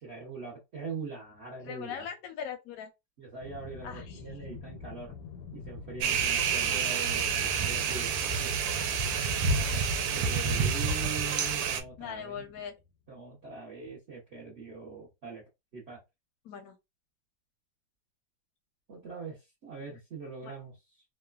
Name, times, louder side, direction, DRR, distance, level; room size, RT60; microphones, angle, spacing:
voice 1, 0.0-2.1 3.2-5.1 5.5-8.1 9.6-12.5 13.1-15.4 15.7-16.0 18.9-20.8, right 4 dB, 50° right, 0.8 m, -42 dB
voice 2, 1.7-2.9 3.8-4.2 12.0-12.7 16.4-16.8 20.4-20.5, left 8 dB, 65° left, 0.9 m, -40 dB
Aircraft, 3.4-12.9, left 2 dB, 85° left, 1.4 m, -44 dB
sound 1, 6.0-11.8, right 6 dB, 80° right, 1.3 m, -28 dB
3.1 x 2.1 x 2.2 m
omnidirectional pair, 2.1 m